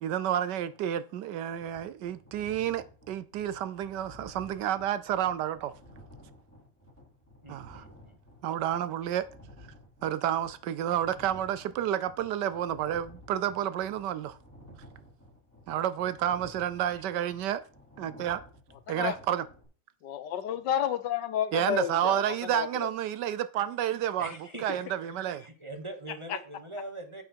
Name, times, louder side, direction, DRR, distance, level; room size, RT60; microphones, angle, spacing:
voice 1, 0.0-5.7 7.5-7.8 8.4-9.2 10.0-14.4 15.7-17.6 18.0-18.4 18.9-19.4 21.5-25.4, right 11 dB, 75° right, 1.2 m, -30 dB
sound 1, 1.5-19.6, left 1 dB, 5° left, 4.1 m, -54 dB
voice 2, 7.4-8.1 16.9-17.0 24.2-24.8 25.4-27.2, right 2 dB, 20° right, 1.1 m, -42 dB
voice 3, 20.0-22.2 22.5-22.9 24.2-24.4 26.3-26.4, left 10 dB, 75° left, 1.4 m, -31 dB
8.6 x 7.6 x 4.5 m
omnidirectional pair, 2.0 m